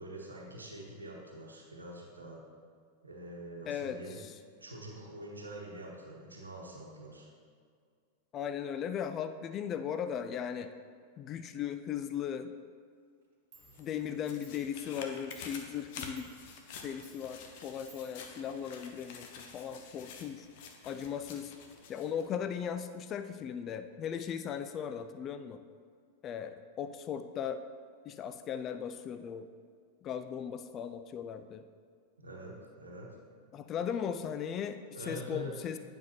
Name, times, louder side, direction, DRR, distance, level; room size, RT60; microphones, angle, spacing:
voice 1, 0.0-2.4 3.0-4.2 4.6-7.3 32.2-33.2 34.9-35.6, right 1 dB, 80° right, -2 dB, 1.0 m, -45 dB
voice 2, 3.7-4.4 8.3-10.7 11.2-12.5 13.8-16.3 16.8-20.5 20.8-21.6 21.9-25.6 26.2-27.6 28.0-29.5 30.0-31.6 33.5-35.8, left 8 dB, 30° left, 9 dB, 0.3 m, -37 dB
Clock, 13.2-13.3 13.5-19.2, right 5 dB, 55° right, 1.2 m, -63 dB
sound 1, 13.5-22.3 22.7-22.8, left 5 dB, 50° left, 0.8 m, -49 dB
9.4 x 5.4 x 3.0 m, 2.1 s
figure-of-eight pair, 90°, 0 cm